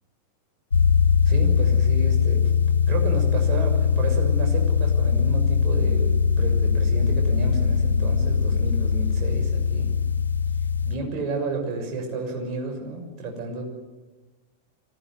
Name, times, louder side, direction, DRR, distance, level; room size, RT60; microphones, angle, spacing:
sound 1, 0.7-11.0, left 6 dB, 75° left, 0.7 m, -21 dB
voice 1, 1.2-9.9 10.8-13.6, right 3 dB, 35° right, 2 dB, 6.6 m, -32 dB
25.0 x 16.5 x 9.6 m, 1.2 s
figure-of-eight pair, 90°, 0 cm